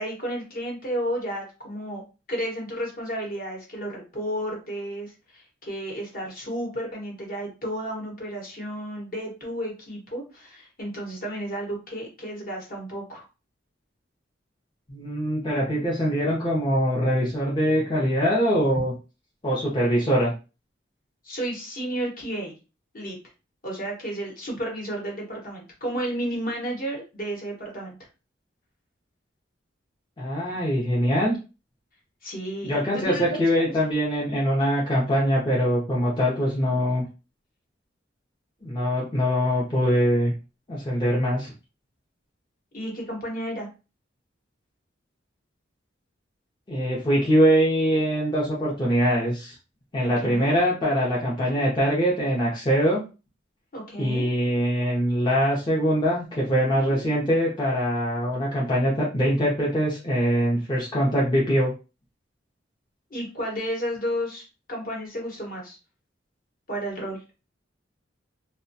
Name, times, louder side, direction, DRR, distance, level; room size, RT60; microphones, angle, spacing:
voice 1, 0.0-2.0 2.3-13.3 21.2-22.5 22.9-23.2 23.6-27.9 32.2-33.7 42.7-43.7 50.0-50.5 51.5-51.6 53.7-54.3 56.7-57.0 63.1-65.8 66.7-67.2, equal, 50° left, -1 dB, 1.0 m, -32 dB
voice 2, 14.9-18.9 19.4-20.3 30.2-31.4 32.6-37.0 38.6-40.3 40.7-41.5 46.7-49.5 49.9-53.0 54.0-61.7, equal, 25° left, -5 dB, 0.6 m, -23 dB
2.2 x 2.2 x 2.6 m, 0.31 s
head